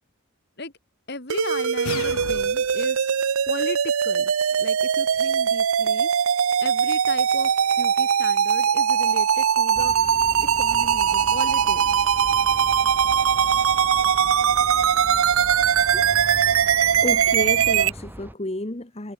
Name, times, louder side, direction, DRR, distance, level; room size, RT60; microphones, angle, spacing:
voice 1, 1.1-3.1 3.5-6.1 6.6-7.5 7.8-9.9 10.6-12.0, left 2 dB, 50° left, 3.4 m, -35 dB
sound 1, 1.3-17.9, right 8 dB, 75° right, 0.6 m, -21 dB
sound 2, 1.8-2.8, left 7 dB, 80° left, 0.5 m, -34 dB
sound 3, 9.7-18.3, equal, 10° right, 1.1 m, -40 dB
voice 2, 17.0-19.1, left 1 dB, 30° left, 1.3 m, -31 dB
head